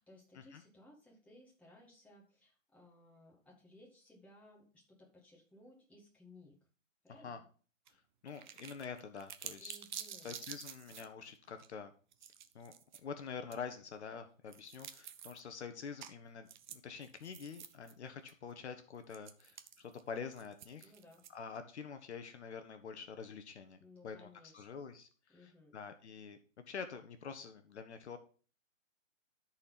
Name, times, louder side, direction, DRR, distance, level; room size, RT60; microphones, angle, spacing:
voice 1, 0.0-6.6 7.0-7.4 9.6-10.4 20.8-21.2 23.8-24.6 25.3-25.7, left 1 dB, 5° left, -4 dB, 1.9 m, -60 dB
voice 2, 7.1-7.4 8.2-9.8 10.2-11.9 12.5-12.7 13.0-20.9 21.3-26.4 26.7-28.2, left 6 dB, 55° left, 8 dB, 1.0 m, -47 dB
sound 1, 7.9-8.0 8.3-11.1 11.6-11.7 12.1-13.0 13.5-13.6 14.5-15.4 16.0-16.1 16.5-17.9 18.3-18.4 19.1-21.6, right 9 dB, 35° right, 0.7 m, -49 dB
13.0 x 4.4 x 4.0 m, 0.40 s
hypercardioid pair, 145°, 40 cm